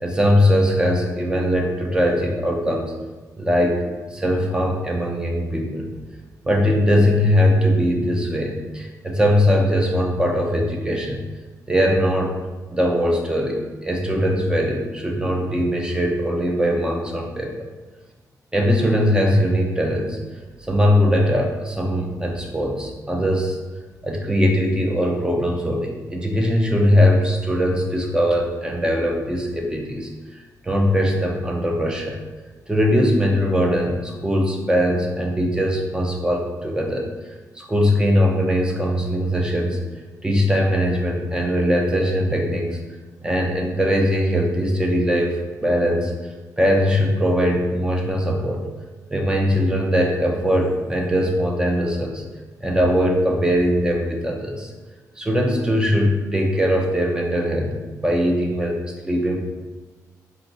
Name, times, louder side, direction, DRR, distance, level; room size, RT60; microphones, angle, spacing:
voice 1, 0.0-2.9 3.4-3.8 4.1-5.9 6.4-11.2 11.7-12.3 12.7-17.6 18.5-20.2 20.7-23.6 24.0-32.2 32.7-37.1 37.6-39.8 40.2-42.8 43.2-46.1 46.6-48.6 49.1-52.2 52.6-54.7 55.2-57.7 58.0-58.8 59.0-59.4, equal, 10° right, 1 dB, 0.6 m, -20 dB
4.5 x 2.7 x 3.9 m, 1.2 s
wide cardioid pair, 130°, 7 cm